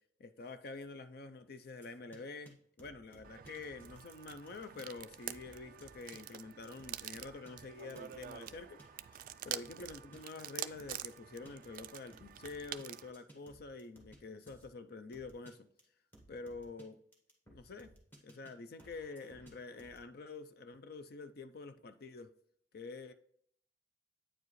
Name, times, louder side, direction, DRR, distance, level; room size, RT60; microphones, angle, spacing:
voice 1, 0.2-9.1 9.5-15.7 16.3-17.0 17.5-17.9 18.2-22.3 22.7-23.1, left 3 dB, 60° left, 10 dB, 0.5 m, -47 dB
sound 1, 1.8-2.2 2.5-2.6 2.8-4.1 4.5-11.1 11.5-11.6 12.0-14.2 14.5-14.7 15.1-15.5 15.8-15.9 16.1-16.8 17.1-18.5 18.8-20.0, right 1 dB, 10° left, 1.7 m, -60 dB
sound 2, 3.2-13.1, right 12 dB, 50° right, 0.3 m, -47 dB
8.9 x 4.8 x 3.1 m, 0.66 s
head